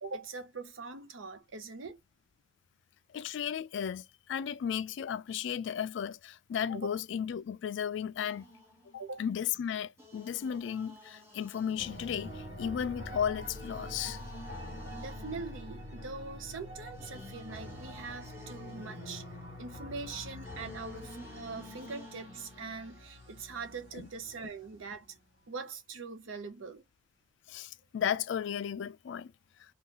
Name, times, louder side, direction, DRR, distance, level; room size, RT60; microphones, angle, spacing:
voice 1, 0.0-2.0 6.7-7.0 9.0-9.2 15.0-19.2 19.6-25.1 25.5-26.8, right 4 dB, 90° right, 0.7 m, -42 dB
voice 2, 3.1-8.5 9.2-14.2 24.0-24.1 27.5-29.3, left 8 dB, 70° left, 0.3 m, -34 dB
sound 1, 8.2-9.4 10.0-16.4 16.9-22.9, left 2 dB, 10° right, 1.0 m, -52 dB
sound 2, 11.8-25.2, left 1 dB, 65° right, 1.6 m, -46 dB
2.8 x 2.4 x 3.7 m
head